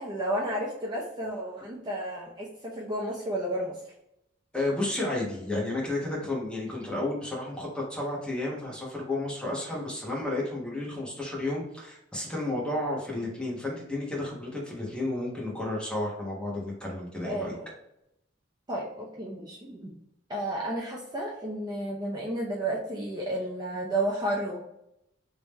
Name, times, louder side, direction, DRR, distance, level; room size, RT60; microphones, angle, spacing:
voice 1, 0.0-3.8 17.2-17.7 18.7-19.9 20.3-24.7, right 1 dB, 20° right, -4 dB, 0.6 m, -32 dB
voice 2, 4.5-17.6, left 2 dB, 5° left, -4 dB, 1.1 m, -32 dB
3.5 x 2.9 x 3.1 m, 0.82 s
head